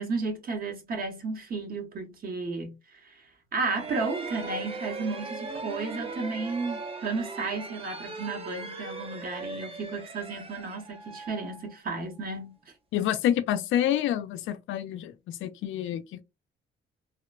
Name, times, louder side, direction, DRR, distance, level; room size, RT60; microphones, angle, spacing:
voice 1, 0.0-2.7 3.0-3.1 3.5-12.5, right 3 dB, 45° right, 0.9 m, -33 dB
sound 1, 3.6-12.3, right 3 dB, 30° right, 0.5 m, -39 dB
voice 2, 12.9-16.2, left 11 dB, 80° left, 0.4 m, -28 dB
2.9 x 2.1 x 2.3 m
cardioid pair, 90°, 20 cm